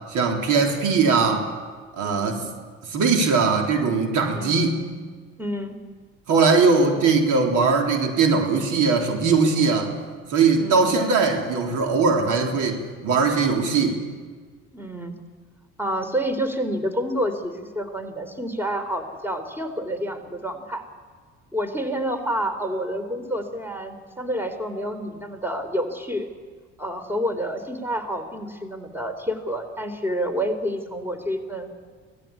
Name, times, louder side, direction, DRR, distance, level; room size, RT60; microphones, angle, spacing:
voice 1, 0.1-1.5 1.9-2.4 2.9-4.8 6.3-9.9 10.3-14.0, right 4 dB, 60° right, 2 dB, 3.7 m, -20 dB
voice 2, 2.0-2.4 4.3-4.6 5.4-5.8 10.6-10.9 14.7-15.1 15.8-20.9 21.5-26.3 26.8-31.7, equal, 5° right, 7 dB, 3.8 m, -28 dB
25.0 x 18.0 x 8.6 m, 1.5 s
hypercardioid pair, 55°, 34 cm